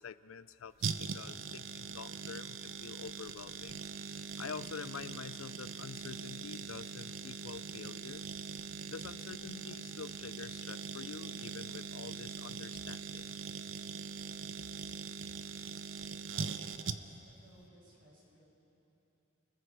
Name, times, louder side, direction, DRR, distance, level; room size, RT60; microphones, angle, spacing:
voice 1, 0.0-3.8 4.4-8.3 8.9-13.3, left 6 dB, 85° left, 15 dB, 0.5 m, -47 dB
sound 1, 0.8-17.3 17.6-17.7, right 6 dB, 70° right, 0.7 m, -42 dB
voice 2, 16.3-18.4, right 1 dB, 45° right, -4 dB, 6.8 m, -60 dB
29.5 x 21.0 x 4.8 m, 3.0 s
head